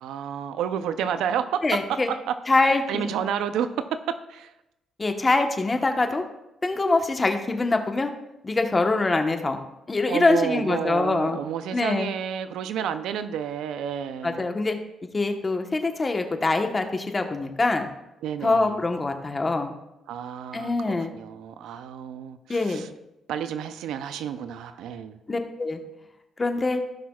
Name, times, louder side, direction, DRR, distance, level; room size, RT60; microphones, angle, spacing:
voice 1, 0.0-2.4 2.6-4.5 10.1-14.5 18.2-18.8 20.1-22.9 23.3-25.2, right 8 dB, 85° right, 10 dB, 0.5 m, -30 dB
voice 2, 1.6-2.1 2.5-3.1 5.0-6.2 6.6-8.1 8.4-9.6 9.9-11.4 11.7-12.1 14.2-14.8 15.1-17.9 18.4-19.7 20.5-21.1 22.5-22.8 25.3-25.8 26.4-26.8, left 3 dB, 25° left, 5 dB, 1.1 m, -24 dB
16.5 x 5.9 x 2.4 m, 0.90 s
cardioid pair, 90°, 0 cm